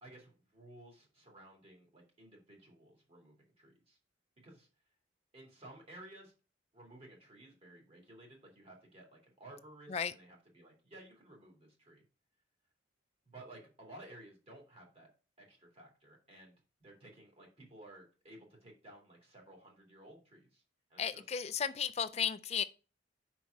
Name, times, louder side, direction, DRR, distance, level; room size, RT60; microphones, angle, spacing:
voice 1, 0.0-4.0 4.4-4.7 5.3-6.3 6.7-12.0 13.2-15.1 15.4-20.6 20.9-21.2, right 1 dB, 30° right, 2.3 m, -55 dB
voice 2, 21.0-22.6, left 7 dB, 35° left, 0.4 m, -34 dB
5.6 x 4.6 x 6.3 m
head